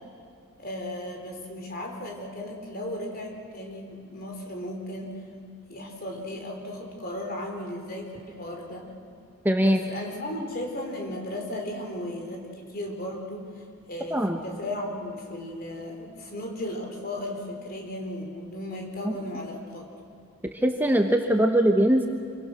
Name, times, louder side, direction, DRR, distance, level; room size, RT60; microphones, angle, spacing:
voice 1, 0.6-5.2 5.7-8.9 9.6-13.5 13.9-19.9, left 1 dB, 45° left, 2 dB, 4.1 m, -35 dB
voice 2, 9.4-9.8 14.1-14.4 20.6-22.1, right 1 dB, 10° right, 3 dB, 1.1 m, -21 dB
27.0 x 23.5 x 6.4 m, 2.4 s
head